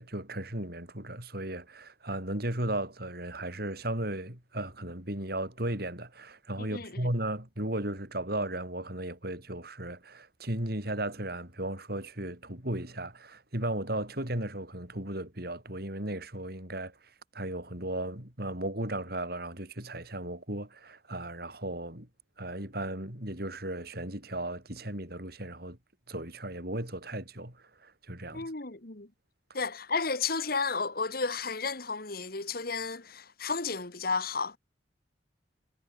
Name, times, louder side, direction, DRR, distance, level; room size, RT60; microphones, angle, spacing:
voice 1, 0.0-16.9 17.3-22.1 22.4-25.8 26.1-27.6 27.8-28.5, right 1 dB, 55° right, 6.0 m, -35 dB
voice 2, 6.6-7.0 28.3-29.1 29.5-34.6, left 4 dB, 50° left, 2.0 m, -32 dB
head